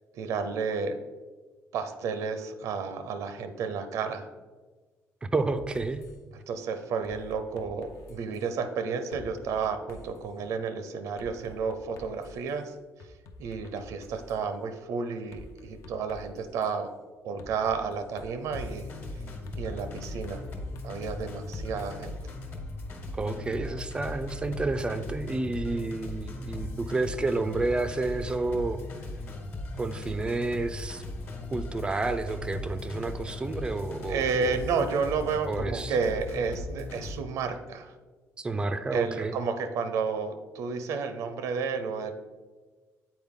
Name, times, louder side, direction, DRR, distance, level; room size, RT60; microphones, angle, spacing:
voice 1, 0.1-1.0 1.7-4.3 6.5-12.7 13.4-16.9 17.2-18.9 19.5-20.4 20.8-22.2 34.1-37.9 38.9-42.1, right 5 dB, 75° right, 9 dB, 0.6 m, -31 dB
voice 2, 5.2-6.0 23.1-28.8 29.8-31.0 31.5-34.6 35.4-36.0 38.4-39.3, right 2 dB, 15° right, 11 dB, 0.3 m, -30 dB
sound 1, 5.5-6.2 7.0-8.5 9.1-10.3 11.2-12.5 13.0-14.4 15.3-16.7 17.4-18.6 19.5-21.9, left 2 dB, 70° left, 0.6 m, -49 dB
sound 2, 18.5-37.2, left 2 dB, 45° left, 1.2 m, -38 dB
7.9 x 4.3 x 3.6 m, 1.3 s
cardioid pair, 145°, 6 cm